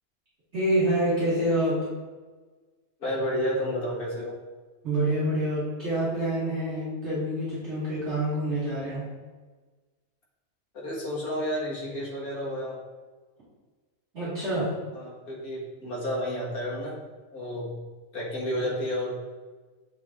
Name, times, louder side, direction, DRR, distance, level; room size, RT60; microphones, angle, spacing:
voice 1, 0.5-1.8 4.8-9.1 14.1-14.7, right 1 dB, 50° right, -12 dB, 2.4 m, -27 dB
voice 2, 3.0-4.3 10.7-12.8 14.9-17.0 17.3-17.8 18.1-19.1, equal, 80° left, -4 dB, 2.1 m, -31 dB
7.9 x 7.0 x 2.5 m, 1.4 s
omnidirectional pair, 1.6 m